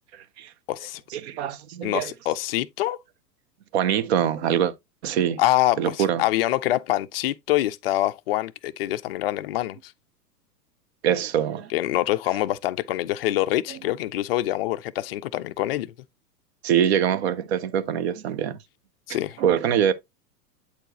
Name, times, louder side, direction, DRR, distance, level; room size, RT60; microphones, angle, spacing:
voice 1, 0.1-0.5 1.1-2.1 3.7-4.7 5.0-5.4 5.8-6.2 11.0-11.7 16.6-18.6 19.1-19.9, right 9 dB, 40° right, 0.7 m, -24 dB
voice 2, 0.7-1.0 1.8-3.0 5.4-9.9 11.7-15.9 19.1-19.4, left 15 dB, 40° left, 0.4 m, -25 dB
8.2 x 4.5 x 2.9 m
figure-of-eight pair, 100°, 48 cm